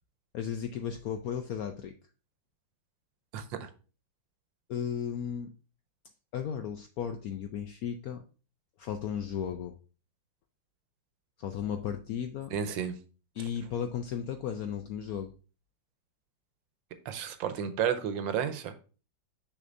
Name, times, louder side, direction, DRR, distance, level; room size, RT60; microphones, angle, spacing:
voice 1, 0.3-1.9 4.7-5.5 6.3-8.2 8.8-9.8 11.4-12.5 13.4-15.3, left 8 dB, 75° left, 0.8 m, -35 dB
voice 2, 3.3-3.7 12.5-12.9 17.0-18.7, right 8 dB, 85° right, 1.5 m, -32 dB
6.4 x 5.9 x 2.6 m
omnidirectional pair, 2.0 m